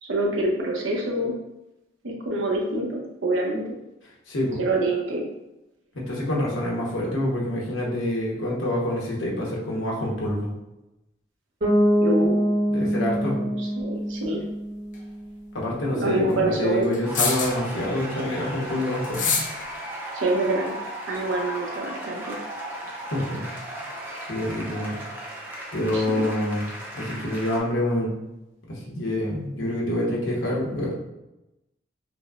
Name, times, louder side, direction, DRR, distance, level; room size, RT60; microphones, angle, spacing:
voice 1, 0.0-1.4 2.0-3.7 4.6-5.3 12.0-12.4 13.6-14.4 15.9-16.9 20.1-20.7 21.1-22.4 25.9-26.2, right 2 dB, 85° right, -1 dB, 0.8 m, -26 dB
voice 2, 4.3-4.6 5.9-10.5 12.7-13.4 15.5-19.3 23.1-23.4 23.7-23.9 24.3-25.0 25.7-26.7 26.9-28.1 28.7-30.9, left 1 dB, 85° left, -3 dB, 1.0 m, -27 dB
Bass guitar, 11.6-15.5, equal, 50° right, 1.4 m, -24 dB
sound 1, 14.9-15.0 16.9-17.7 19.0-19.6, left 5 dB, 40° left, 0.5 m, -25 dB
sound 2, 17.0-27.6, right 1 dB, 10° right, 0.5 m, -36 dB
5.1 x 2.1 x 2.4 m, 0.94 s
head